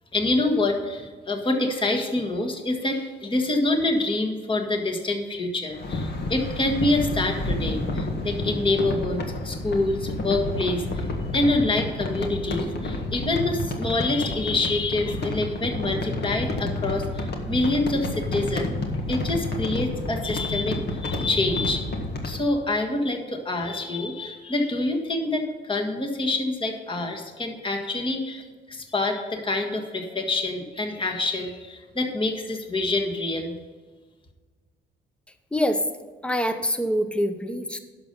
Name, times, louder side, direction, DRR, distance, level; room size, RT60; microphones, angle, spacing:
voice 1, 0.1-11.1 11.3-18.8 19.1-21.9 22.2-33.6, left 2 dB, 25° left, 2 dB, 1.7 m, -26 dB
sound 1, 5.7-22.4, left 2 dB, 55° left, 1.8 m, -30 dB
voice 2, 35.5-35.8 36.2-37.8, equal, 5° left, 8 dB, 0.9 m, -25 dB
11.0 x 6.8 x 5.4 m, 1.4 s
cardioid pair, 90°, 20 cm